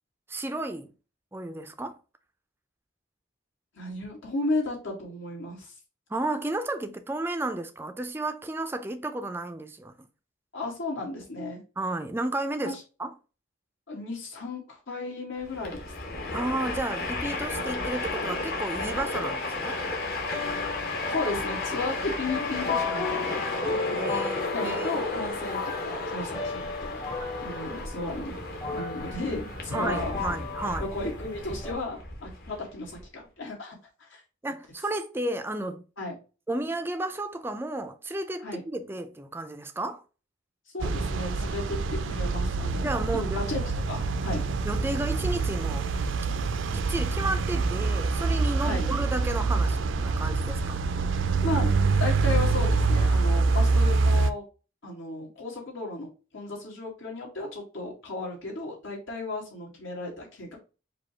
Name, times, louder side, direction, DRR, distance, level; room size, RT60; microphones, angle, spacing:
voice 1, 0.3-0.9 1.3-2.0 6.1-10.1 11.8-13.1 16.3-19.8 24.0-25.2 29.7-30.9 34.4-35.8 36.5-40.0 42.8-43.4 44.6-45.9 46.3-46.4 46.7-50.8, right 2 dB, 10° right, 0.3 m, -32 dB
voice 2, 3.7-5.7 10.5-11.6 12.6-12.8 13.9-16.3 21.1-24.1 24.5-27.0 27.4-28.4 28.7-30.2 30.8-33.7 36.0-36.1 38.4-38.6 40.7-43.6 43.9-44.4 48.6-48.9 51.4-51.7 52.0-54.4 54.8-60.6, left 2 dB, 75° left, 1.9 m, -34 dB
Train, 15.4-33.0, left 2 dB, 50° left, 1.0 m, -33 dB
sound 1, 19.1-31.7, left 4 dB, 25° left, 0.8 m, -36 dB
sound 2, 40.8-54.3, right 4 dB, 70° right, 0.4 m, -25 dB
4.9 x 2.3 x 4.3 m
head